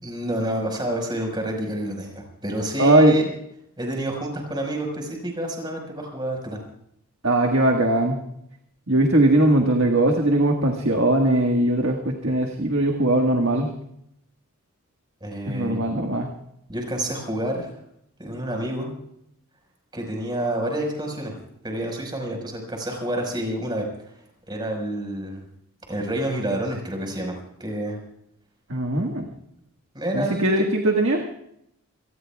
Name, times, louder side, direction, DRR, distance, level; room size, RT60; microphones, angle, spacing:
voice 1, 0.0-3.2 3.8-6.6 15.2-15.8 16.7-17.7 18.2-18.9 19.9-21.4 21.6-23.9 24.5-25.4 25.9-28.0 29.9-30.7, right 1 dB, 20° right, 2 dB, 5.0 m, -28 dB
voice 2, 2.8-3.2 7.2-8.2 8.9-13.7 15.5-16.3 28.7-29.3 30.1-31.2, right 1 dB, 60° right, 1 dB, 1.7 m, -20 dB
28.5 x 19.0 x 2.4 m, 0.74 s
head